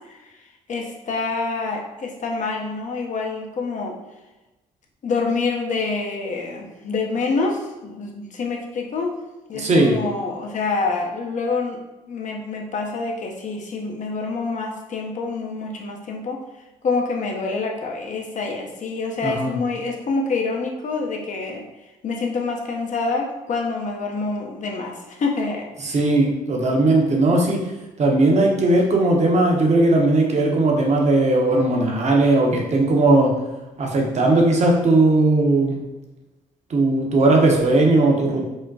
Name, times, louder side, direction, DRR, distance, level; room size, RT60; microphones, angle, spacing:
voice 1, 0.7-4.0 5.0-9.2 9.5-11.8 12.1-16.4 16.8-21.6 22.0-26.1, left 3 dB, 55° left, 1 dB, 0.8 m, -26 dB
voice 2, 9.5-10.0 19.2-19.6 25.8-27.6 28.0-33.3 33.8-35.8 36.7-38.4, right 2 dB, 45° right, 0 dB, 1.0 m, -18 dB
4.8 x 2.2 x 2.7 m, 1.1 s
supercardioid pair, 65°, 16 cm